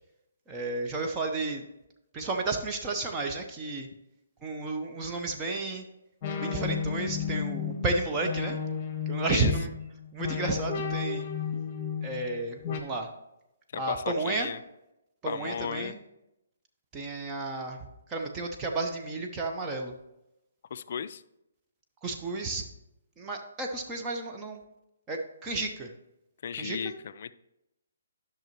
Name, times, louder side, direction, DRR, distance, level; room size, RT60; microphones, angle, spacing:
voice 1, 0.5-1.6 2.1-3.9 4.4-5.8 6.4-8.6 9.1-9.7 10.1-11.2 12.0-13.1 13.7-14.5 15.2-16.0 16.9-17.8 18.1-19.9 22.0-22.6 23.2-24.6 25.1-25.9 26.6-26.8, right 3 dB, 15° right, 2 dB, 0.7 m, -32 dB
sound 1, 6.2-12.8, left 7 dB, 25° left, 1.1 m, -33 dB
voice 2, 13.7-14.6 15.3-15.9 20.7-21.2 26.4-27.3, left 7 dB, 45° left, 14 dB, 0.3 m, -35 dB
11.5 x 6.1 x 3.0 m, 0.89 s
figure-of-eight pair, 135°, 0 cm